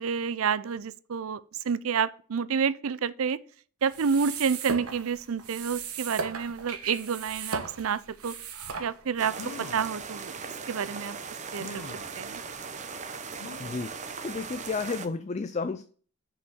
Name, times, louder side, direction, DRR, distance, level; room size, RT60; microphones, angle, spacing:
voice 1, 0.0-3.4 3.8-8.3 8.8-10.3 10.7-11.2 11.5-11.8 12.2-12.4, right 6 dB, 70° right, 0.5 m, -29 dB
sound 1, 3.8-9.3, right 5 dB, 85° right, 1.2 m, -37 dB
sound 2, 8.9-9.0 9.3-9.9 10.7-10.8 11.6-12.1 13.4-13.9 14.4-14.5 14.8-14.9, left 3 dB, 70° left, 0.8 m, -43 dB
sound 3, 9.2-15.1, right 5 dB, 35° right, 0.7 m, -39 dB
voice 2, 13.6-15.8, left 4 dB, 30° left, 0.4 m, -32 dB
5.6 x 5.4 x 6.2 m
head